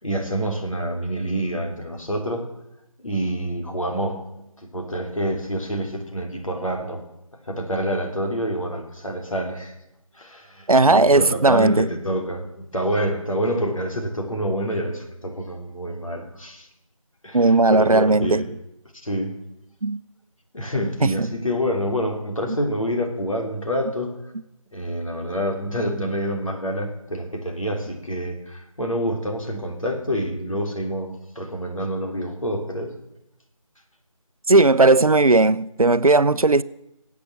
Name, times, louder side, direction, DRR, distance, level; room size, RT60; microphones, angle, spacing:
voice 1, 0.0-2.5 3.0-4.2 4.7-7.0 7.5-9.7 10.1-16.7 17.2-18.5 19.0-19.3 20.5-24.1 24.7-32.9, equal, 70° left, 3.4 m, -27 dB
voice 2, 10.7-11.9 17.3-18.4 19.8-20.0 21.0-21.3 34.5-36.6, right 3 dB, 85° right, 0.7 m, -16 dB
20.5 x 8.5 x 7.4 m
figure-of-eight pair, 165°, 18 cm